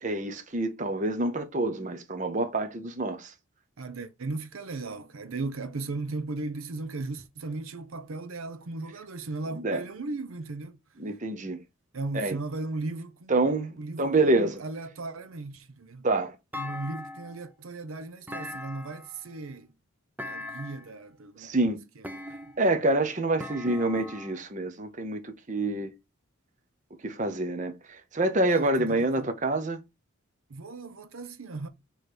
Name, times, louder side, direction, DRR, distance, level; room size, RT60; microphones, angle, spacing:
voice 1, 0.0-3.3 9.5-9.8 11.0-11.6 12.1-12.4 13.3-14.6 16.0-16.3 21.4-21.8 22.6-25.9 27.0-29.8, right 2 dB, 35° right, 0.8 m, -27 dB
voice 2, 3.8-10.8 11.9-16.0 16.6-19.7 20.2-22.5 28.5-29.3 30.5-31.7, right 3 dB, 80° right, 0.7 m, -37 dB
Thump thud, 16.5-17.4 18.3-19.2 20.2-20.9 22.0-22.7 23.4-24.4, left 2 dB, 10° right, 0.5 m, -40 dB
6.4 x 3.1 x 4.9 m
head